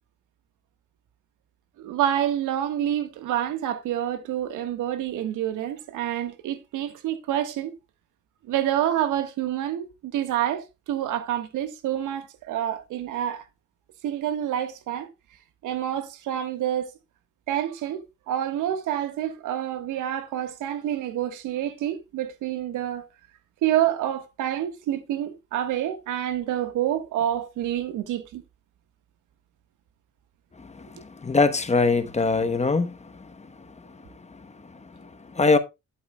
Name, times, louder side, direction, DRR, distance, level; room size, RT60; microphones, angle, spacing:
voice 1, 1.8-7.7 8.5-13.4 14.0-15.1 15.6-16.9 17.5-23.0 23.6-28.4, right 11 dB, 90° right, 1.5 m, -28 dB
voice 2, 30.6-35.6, left 3 dB, 20° left, 1.0 m, -25 dB
12.0 x 8.2 x 2.3 m
cardioid pair, 90°, 30 cm